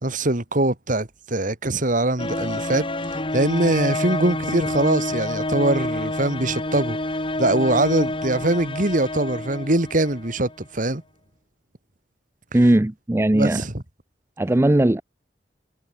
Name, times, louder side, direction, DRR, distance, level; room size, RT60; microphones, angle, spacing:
voice 1, 0.0-2.8 3.3-7.0 7.4-11.0 13.3-13.7, right 2 dB, 50° right, 2.6 m, -22 dB
sound 1, 2.2-10.5, left 1 dB, 30° left, 4.1 m, -28 dB
voice 2, 12.5-13.6 14.4-15.0, right 1 dB, 15° right, 0.5 m, -18 dB
head